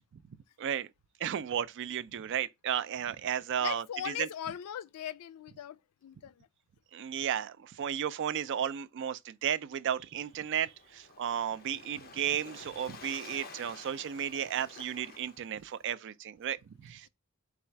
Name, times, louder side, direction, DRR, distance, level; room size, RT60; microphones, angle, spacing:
voice 1, 1.2-4.3 6.9-17.1, right 9 dB, 55° right, 0.3 m, -34 dB
voice 2, 3.6-6.5, left 10 dB, 85° left, 0.3 m, -40 dB
Waves surf, 10.1-15.8, left 4 dB, 45° left, 0.7 m, -51 dB
4.1 x 2.4 x 4.4 m
head